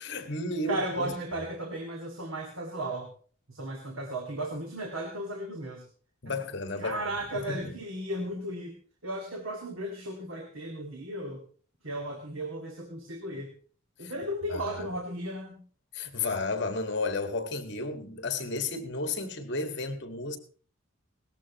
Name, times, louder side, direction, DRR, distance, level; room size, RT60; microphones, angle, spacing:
voice 1, 0.1-1.1 6.2-7.7 14.0-14.1 14.5-14.9 15.9-20.4, left 3 dB, 55° left, 1.7 m, -33 dB
voice 2, 0.7-3.1 3.5-5.8 6.3-6.4 6.8-8.8 9.0-11.4 11.8-13.5 14.0-15.6, right 1 dB, 85° right, 2.1 m, -35 dB
18.5 x 14.0 x 3.0 m
head